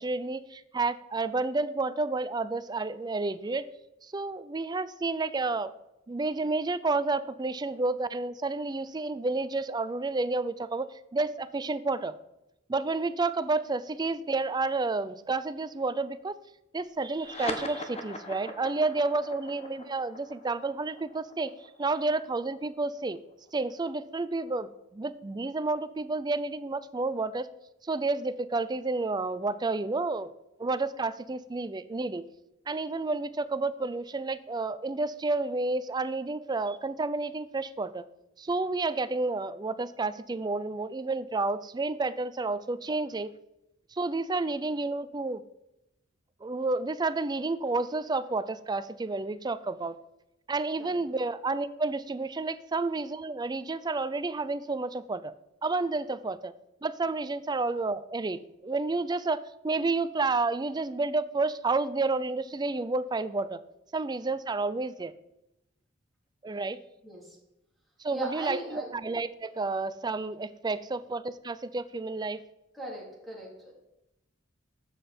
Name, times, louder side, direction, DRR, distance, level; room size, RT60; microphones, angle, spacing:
voice 1, 0.0-3.7 4.0-5.7 6.1-12.1 12.7-16.4 16.7-21.5 21.8-23.2 23.5-27.5 27.8-30.3 30.6-32.2 32.7-38.0 38.4-43.3 43.9-45.4 46.4-50.0 50.5-55.3 55.6-56.5 56.8-63.6 63.9-65.1 66.4-66.8 68.0-72.4, right 3 dB, 20° right, 14 dB, 0.4 m, -30 dB
sound 1, 17.1-24.0, left 1 dB, 30° left, 1.1 m, -41 dB
voice 2, 68.1-68.9 72.7-73.7, right 1 dB, ahead, -4 dB, 3.4 m, -38 dB
11.5 x 7.5 x 4.4 m, 0.88 s
head